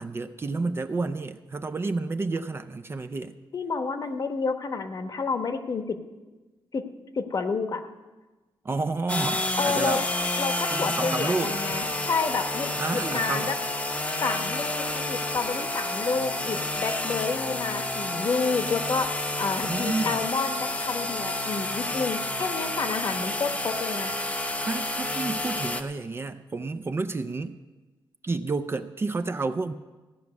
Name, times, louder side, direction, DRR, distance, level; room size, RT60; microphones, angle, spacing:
voice 1, 0.0-3.3 8.6-10.0 10.7-11.8 12.8-13.5 19.6-20.2 24.7-27.6 28.2-29.7, right 3 dB, 25° right, 9 dB, 0.5 m, -30 dB
voice 2, 3.5-6.0 6.7-6.8 7.1-7.8 9.6-10.0 10.4-13.6 14.2-19.1 19.4-24.1, left 4 dB, 45° left, 7 dB, 1.0 m, -29 dB
sound 1, 9.1-25.8, left 2 dB, 15° left, 0.8 m, -30 dB
sound 2, 9.9-24.9, left 5 dB, 75° left, 1.4 m, -48 dB
16.0 x 5.9 x 9.5 m, 1.2 s
wide cardioid pair, 145°, 9 cm